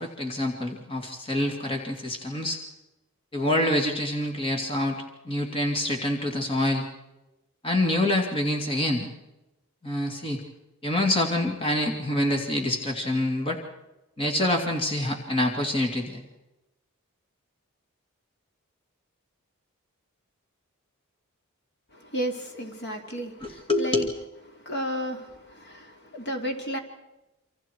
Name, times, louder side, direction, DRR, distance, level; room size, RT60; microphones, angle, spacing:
voice 1, 0.0-2.6 3.3-5.0 5.3-6.9 7.6-9.1 9.8-10.4 10.8-13.6 14.2-16.2 23.4-24.1, left 1 dB, 25° left, 2 dB, 2.5 m, -26 dB
voice 2, 21.9-24.1 24.5-26.8, equal, 50° left, 3 dB, 2.9 m, -33 dB
28.5 x 26.5 x 4.7 m, 0.97 s
head